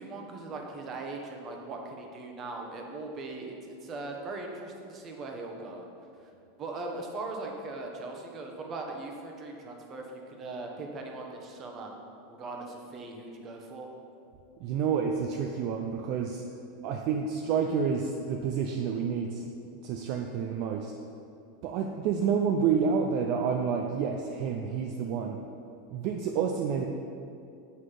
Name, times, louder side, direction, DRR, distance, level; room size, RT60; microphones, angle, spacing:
voice 1, 0.0-5.9 6.2-6.3 6.6-11.9 12.3-13.9, right 3 dB, 30° right, 2 dB, 0.9 m, -39 dB
voice 2, 14.6-16.4 16.8-19.5 19.8-20.9 21.6-25.4 25.9-26.9, right 6 dB, 50° right, 3 dB, 0.4 m, -29 dB
7.7 x 4.1 x 4.9 m, 2.6 s
supercardioid pair, 145°, 0 cm